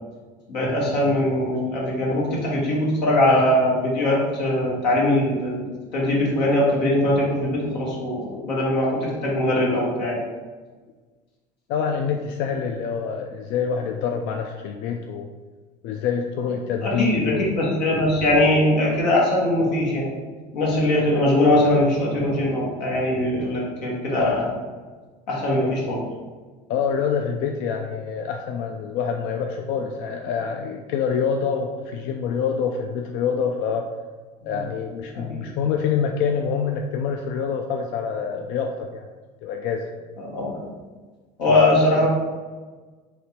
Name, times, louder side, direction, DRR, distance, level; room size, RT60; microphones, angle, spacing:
voice 1, 0.5-8.9 9.2-10.2 16.8-20.1 20.5-24.5 25.3-26.0 34.4-34.5 35.1-35.5 40.2-40.6 41.4-42.1, left 1 dB, 90° left, -4 dB, 1.1 m, -21 dB
voice 2, 11.7-15.3 15.8-17.5 26.7-33.8 34.4-39.1 39.4-39.8, left 6 dB, 65° left, 3 dB, 0.4 m, -26 dB
3.2 x 2.9 x 4.3 m, 1.4 s
hypercardioid pair, 75°, 21 cm